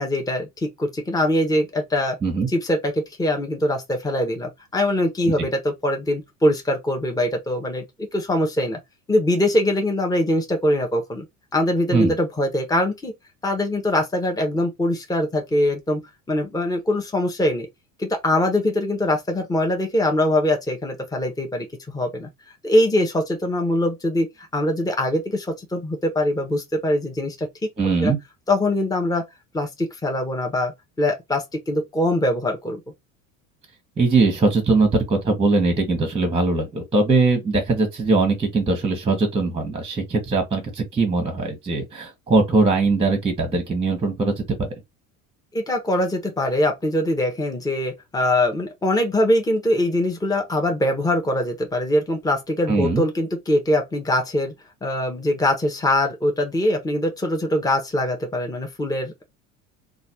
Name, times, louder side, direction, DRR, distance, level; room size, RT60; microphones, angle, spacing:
voice 1, 0.0-2.2 2.5-8.8 9.1-11.2 11.5-13.1 13.4-16.0 16.3-17.7 18.0-22.3 22.6-27.5 28.0-28.1 28.5-29.2 29.5-32.8 45.5-54.5 54.8-59.2, left 1 dB, 10° left, 0.9 m, -22 dB
voice 2, 27.8-28.2 34.0-44.4 52.7-53.0, right 3 dB, 15° right, 1.1 m, -21 dB
3.1 x 2.5 x 2.8 m
hypercardioid pair, 70°, 43 cm